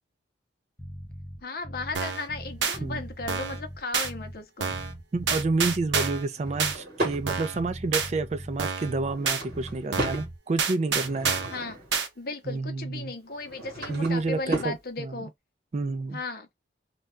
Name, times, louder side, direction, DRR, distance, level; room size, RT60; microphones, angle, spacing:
Bass guitar, 0.8-2.0 2.3-4.4 4.7-6.8 7.1-9.2 9.5-10.4, equal, 15° left, 0.6 m, -41 dB
voice 1, 1.4-4.7 11.5-11.8 12.2-15.3 16.1-16.5, left 3 dB, 55° left, 0.6 m, -36 dB
sound 1, 1.9-2.3 2.6-2.8 3.3-3.6 3.9-4.1 4.6-4.9 5.3-6.3 6.6-6.8 7.3-7.6 7.9-8.1 8.6-8.9 9.2-9.4 9.9-10.2 10.6-11.6 11.9-12.1, right 5 dB, 90° right, 0.7 m, -28 dB
voice 2, 5.1-11.3 12.5-13.1 13.9-15.1 15.7-16.2, right 3 dB, 40° right, 0.3 m, -29 dB
Drawer open or close / Wood, 6.3-7.2 8.9-10.3 10.8-12.0 13.3-14.8, right 2 dB, 55° right, 1.5 m, -35 dB
2.6 x 2.3 x 3.2 m
head